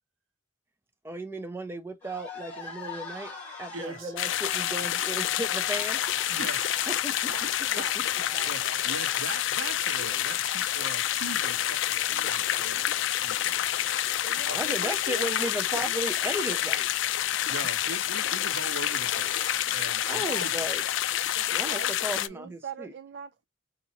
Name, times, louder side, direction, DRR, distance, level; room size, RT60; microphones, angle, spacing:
voice 1, 1.0-3.3 3.6-6.0 6.9-7.5 8.0-8.1 14.5-16.9 20.1-20.8 21.5-22.9, right 1 dB, 10° right, 0.6 m, -35 dB
sound 1, 2.0-9.6, left 4 dB, 10° left, 2.7 m, -44 dB
voice 2, 3.7-4.1 6.3-6.7 8.4-13.5 14.5-14.6 17.5-20.7, right 3 dB, 80° right, 1.0 m, -40 dB
sound 2, 4.2-22.3, left 12 dB, 70° left, 0.3 m, -28 dB
voice 3, 7.3-8.0 8.3-8.9 14.2-15.5 20.2-20.5 21.3-23.4, right 5 dB, 55° right, 0.3 m, -42 dB
4.2 x 2.6 x 2.8 m
head